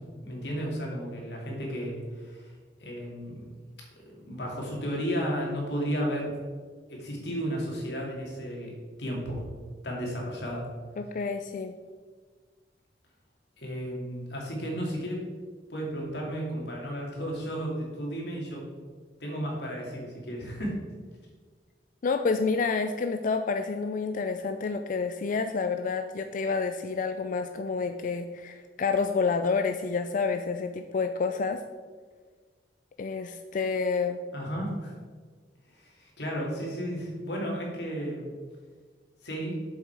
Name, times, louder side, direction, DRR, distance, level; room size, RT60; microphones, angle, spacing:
voice 1, 0.2-2.5 2.8-3.4 3.9-6.3 6.9-8.7 9.0-9.4 9.8-10.7 13.6-15.2 15.7-18.7 19.2-20.8 34.3-34.9 35.7-38.3 39.2-39.6, equal, 70° left, -2 dB, 2.6 m, -33 dB
voice 2, 11.0-11.8 22.0-31.6 33.0-34.2, left 4 dB, 50° left, 7 dB, 0.4 m, -29 dB
7.4 x 7.1 x 4.7 m, 1.5 s
head